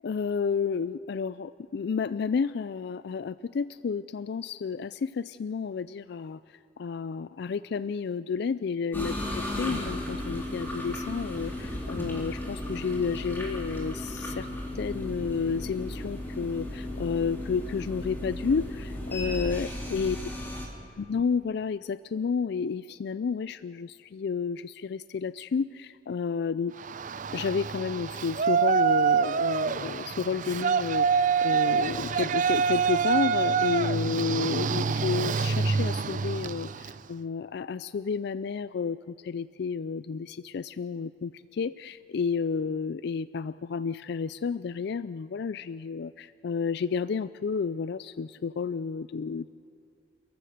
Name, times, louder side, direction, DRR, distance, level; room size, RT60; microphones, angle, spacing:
voice 1, 0.0-6.4 6.8-14.5 14.7-20.2 21.0-26.8 27.3-49.5, left 5 dB, 65° left, 15 dB, 0.4 m, -31 dB
sound 1, 8.9-20.7, left 1 dB, 10° left, 3.8 m, -35 dB
Yell, 26.8-37.0, right 6 dB, 45° right, 0.5 m, -26 dB
30.0 x 15.0 x 6.5 m, 2.6 s
head